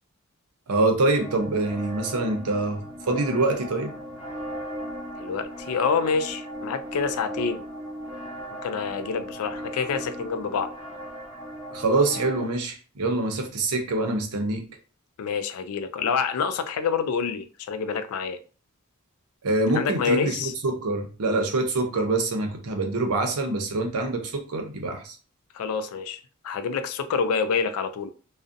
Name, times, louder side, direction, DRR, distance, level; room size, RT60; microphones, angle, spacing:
voice 1, 0.7-3.9 11.7-14.6 19.4-25.1, right 2 dB, 80° right, 0.6 m, -25 dB
sound 1, 1.1-12.5, equal, 10° right, 0.6 m, -37 dB
voice 2, 5.2-7.6 8.6-10.7 15.2-18.4 19.7-20.5 25.5-28.1, left 5 dB, 70° left, 0.3 m, -27 dB
2.5 x 2.0 x 2.5 m
head